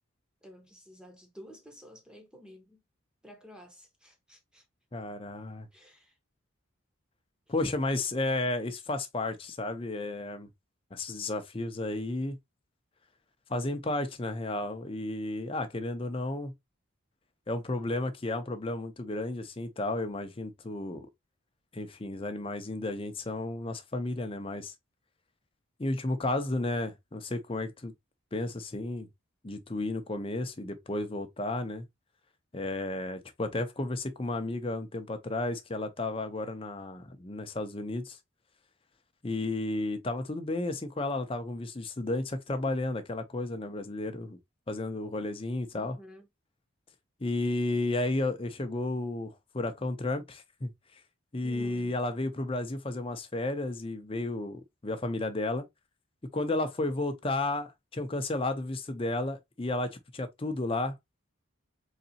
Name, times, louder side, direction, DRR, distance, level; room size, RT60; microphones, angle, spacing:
voice 1, 0.4-2.8 3.2-4.6 5.7-6.2 45.7-46.3 51.4-52.0, left 1 dB, 5° right, 0.9 m, -51 dB
voice 2, 4.9-5.7 7.5-10.5 10.9-12.4 13.5-16.5 17.5-21.1 21.7-24.7 25.8-27.9 28.3-29.1 29.4-31.9 32.5-38.2 39.2-44.4 44.7-46.0 47.2-51.0 51.3-55.7 56.3-61.0, left 2 dB, 25° left, 0.6 m, -33 dB
4.0 x 3.2 x 2.7 m
head